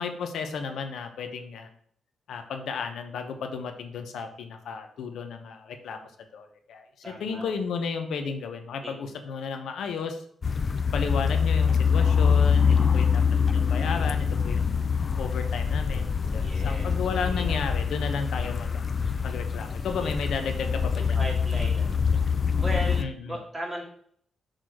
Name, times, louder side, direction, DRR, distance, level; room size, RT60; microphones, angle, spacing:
voice 1, 0.0-1.7 2.3-10.2 10.9-13.2 13.5-14.8 15.2-18.8 19.2-21.2 23.0-23.4, left 5 dB, 80° left, 6 dB, 0.9 m, -33 dB
voice 2, 7.0-7.5 8.8-8.9 12.7-13.1 16.4-16.9 17.2-17.6 19.5-19.6 19.9-20.1 21.0-22.2 22.6-23.8, right 1 dB, 15° right, -3 dB, 2.4 m, -37 dB
sound 1, 10.4-23.0, left 6 dB, 40° left, 0.4 m, -24 dB
6.6 x 3.9 x 6.2 m, 0.64 s
cardioid pair, 115°, 0 cm